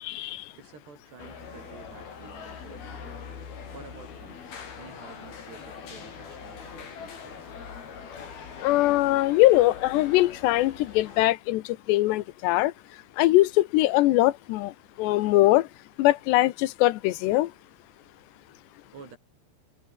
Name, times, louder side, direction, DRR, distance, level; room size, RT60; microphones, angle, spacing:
voice 1, 0.0-0.4 8.6-12.7 13.2-14.7 15.0-15.7 16.0-17.5, left 17 dB, 85° left, 3.1 m, -22 dB
voice 2, 0.5-3.2 3.7-4.4 4.7-7.5 18.9-19.2, right 5 dB, 75° right, 7.7 m, -49 dB
sound 1, 1.2-11.2, left 6 dB, 65° left, 6.2 m, -42 dB
omnidirectional pair, 4.8 m